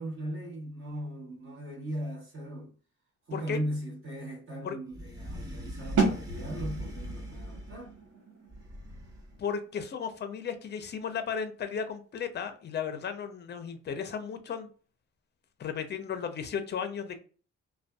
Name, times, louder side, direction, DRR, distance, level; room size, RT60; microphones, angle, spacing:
voice 1, 0.0-2.7 3.3-8.0, equal, 45° right, 1.1 m, -38 dB
sound 1, 4.9-7.9 8.5-9.4, equal, 10° right, 1.0 m, -40 dB
sound 2, 6.0-11.7, right 4 dB, 85° right, 0.9 m, -34 dB
voice 2, 9.4-14.7 15.6-17.2, left 7 dB, 35° left, 0.5 m, -35 dB
2.5 x 2.2 x 2.2 m
cardioid pair, 90°, 30 cm